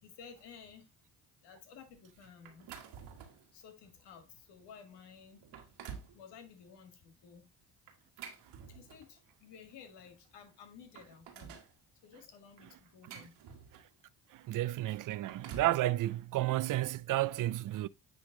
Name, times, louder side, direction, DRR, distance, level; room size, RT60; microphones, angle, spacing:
voice 1, 0.0-0.9 1.4-2.7 3.5-5.5 6.1-7.5 8.7-11.6 12.0-13.4, left 6 dB, 85° left, 1.8 m, -54 dB
sound 1, 2.4-3.5 4.1-4.2 4.8-4.9 5.4-6.2 7.9-9.2 10.2-10.3 10.7-11.7 12.6-14.0 15.0-15.8, right 7 dB, 80° right, 1.6 m, -49 dB
voice 2, 14.5-17.9, right 15 dB, 55° right, 0.5 m, -31 dB
9.8 x 3.5 x 3.7 m
supercardioid pair, 70°, 40 cm